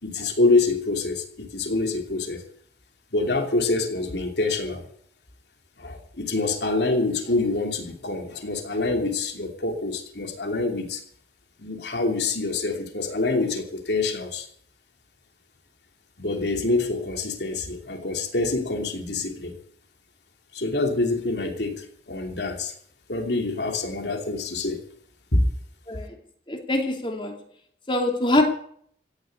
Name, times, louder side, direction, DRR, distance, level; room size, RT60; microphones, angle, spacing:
voice 1, 0.0-2.4 3.1-4.8 5.8-11.0 11.6-14.5 16.2-19.6 20.5-22.7 23.1-24.8 25.3-25.4, left 3 dB, 75° left, 2.9 m, -26 dB
voice 2, 26.5-27.3 27.9-28.4, left 1 dB, 25° left, 2.6 m, -23 dB
16.5 x 7.7 x 9.7 m
head